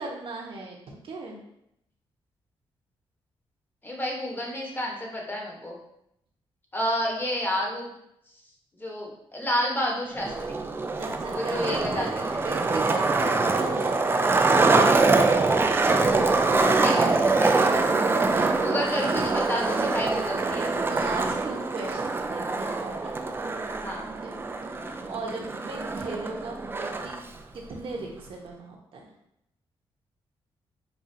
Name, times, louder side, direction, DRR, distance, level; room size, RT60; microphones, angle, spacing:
voice 1, 0.0-1.4 11.0-12.1 12.4-14.8 18.3-18.8 20.8-22.9 24.2-24.4 25.1-27.1 27.5-29.1, right 3 dB, 60° right, -1 dB, 0.9 m, -37 dB
voice 2, 3.8-5.8 6.7-7.9 8.8-10.5 11.3-12.4 16.8-17.8 18.6-20.7 23.8-24.1 24.8-25.0, equal, 20° left, -1 dB, 1.0 m, -30 dB
Skateboard, 10.2-27.2, right 3 dB, 20° right, 0.3 m, -24 dB
5.4 x 2.4 x 2.7 m, 0.78 s
cardioid pair, 100°, 10 cm